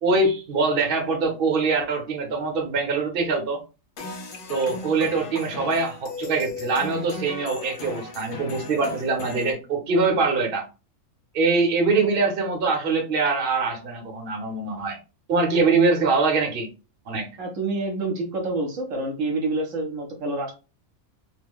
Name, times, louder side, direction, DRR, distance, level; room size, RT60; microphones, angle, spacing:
voice 1, 0.0-3.6 4.5-10.7 11.3-15.0 15.3-16.7 17.1-17.3, right 4 dB, 50° right, 2 dB, 0.9 m, -23 dB
sound 1, 4.0-9.5, left 3 dB, 55° left, 0.6 m, -36 dB
voice 2, 17.4-20.5, right 2 dB, 70° right, 2 dB, 1.1 m, -27 dB
2.9 x 2.2 x 3.5 m, 0.31 s
omnidirectional pair, 1.4 m